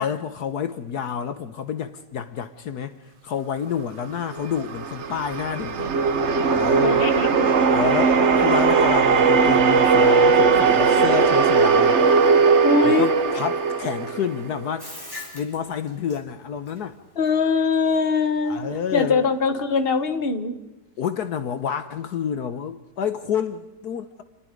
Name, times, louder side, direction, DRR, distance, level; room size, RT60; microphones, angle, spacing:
voice 1, 0.0-5.9 6.5-7.1 7.7-12.0 12.8-14.9 15.3-17.0 18.4-19.2 21.0-24.2, left 8 dB, 70° left, 1.5 m, -29 dB
sound 1, 4.3-14.7, right 5 dB, 45° right, 1.3 m, -18 dB
voice 2, 6.8-7.4 12.1-12.2 12.6-13.1 17.2-18.7 18.9-20.5, left 4 dB, 35° left, 1.7 m, -22 dB
Bathtub (filling or washing), 14.8-20.2, left 2 dB, 10° left, 4.9 m, -43 dB
28.5 x 21.5 x 5.2 m
omnidirectional pair, 1.8 m